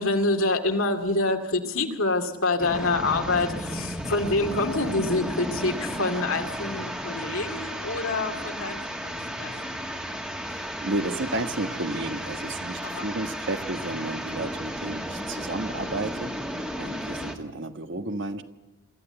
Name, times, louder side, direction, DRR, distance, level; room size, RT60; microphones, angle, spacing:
voice 1, 0.0-9.8 12.8-13.1, left 2 dB, 70° left, 5 dB, 2.4 m, -27 dB
sound 1, 2.6-17.4, equal, 5° right, 1.8 m, -34 dB
sound 2, 6.1-16.0, left 1 dB, 55° left, 3.0 m, -47 dB
voice 2, 10.5-16.3 16.7-18.4, right 2 dB, 55° right, 9 dB, 1.4 m, -32 dB
24.5 x 14.5 x 7.9 m, 1.1 s
head